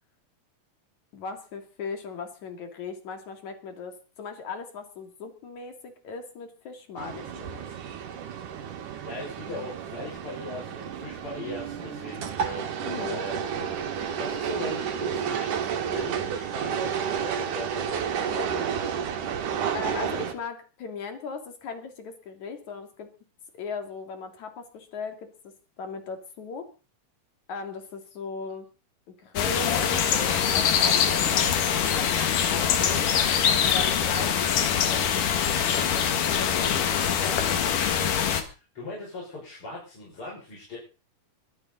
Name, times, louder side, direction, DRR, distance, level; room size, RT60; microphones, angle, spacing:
voice 1, 1.1-7.7 12.8-13.2 19.7-23.1 23.6-25.3 25.8-26.7 27.5-28.7 29.1-33.1 33.6-35.1 36.4-37.5, left 5 dB, 65° left, 6 dB, 3.8 m, -38 dB
sound 1, 7.0-20.3, right 7 dB, 80° right, 3.3 m, -31 dB
voice 2, 9.0-18.7 38.4-40.8, left 2 dB, 40° left, -5 dB, 6.6 m, -39 dB
sound 2, 29.4-38.4, left 8 dB, 85° left, 3.3 m, -23 dB
23.0 x 12.5 x 4.0 m, 0.35 s
omnidirectional pair, 3.6 m